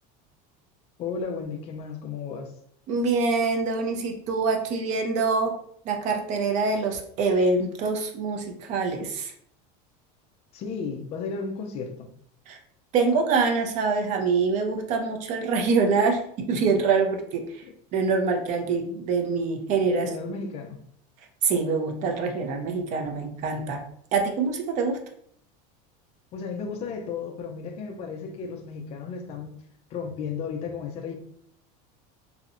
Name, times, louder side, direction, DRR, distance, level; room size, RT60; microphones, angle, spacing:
voice 1, 1.0-2.5 10.5-12.1 19.9-20.8 26.3-29.5 29.9-31.1, left 5 dB, 30° left, 0.4 m, -34 dB
voice 2, 2.9-5.5 5.9-9.3 12.5-12.6 12.9-17.6 17.9-20.1 21.4-23.8 24.1-25.0, right 4 dB, 40° right, 0.4 m, -25 dB
2.7 x 2.0 x 2.4 m
cardioid pair, 160°, 20 cm